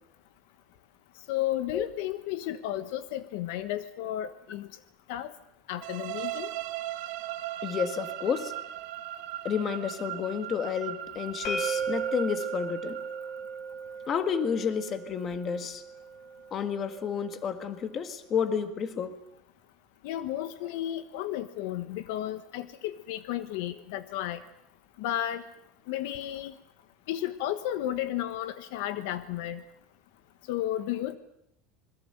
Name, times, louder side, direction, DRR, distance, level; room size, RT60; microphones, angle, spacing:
voice 1, 1.3-4.7 5.1-5.3 5.7-6.5 20.0-24.4 25.0-25.4 25.9-26.5 27.1-29.6 30.5-31.2, left 13 dB, 65° left, 12 dB, 1.3 m, -33 dB
sound 1, 5.8-13.6, right 14 dB, 55° right, 1.9 m, -38 dB
voice 2, 7.6-8.5 9.4-13.0 14.1-15.8 16.5-19.2, left 7 dB, 25° left, 9 dB, 1.7 m, -31 dB
sound 2, 11.4-17.2, right 4 dB, 45° left, 4.4 m, -36 dB
26.0 x 21.5 x 7.9 m, 0.77 s
cardioid pair, 175°, 0 cm